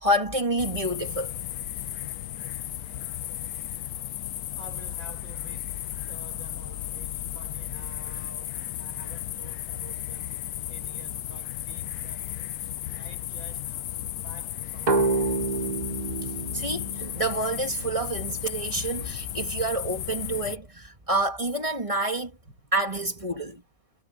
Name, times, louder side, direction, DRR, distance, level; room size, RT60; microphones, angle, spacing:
voice 1, 0.0-1.3 16.5-22.3 22.7-23.6, right 1 dB, 15° right, 2.1 m, -28 dB
sound 1, 0.6-20.6, left 13 dB, 70° left, 0.9 m, -35 dB
voice 2, 2.7-3.3 4.5-10.4 10.7-12.4 12.9-13.8 14.2-15.3 22.5-22.7, right 3 dB, 80° right, 5.9 m, -50 dB
sound 2, 14.9-18.3, right 3 dB, 35° right, 0.7 m, -28 dB
omnidirectional pair, 2.1 m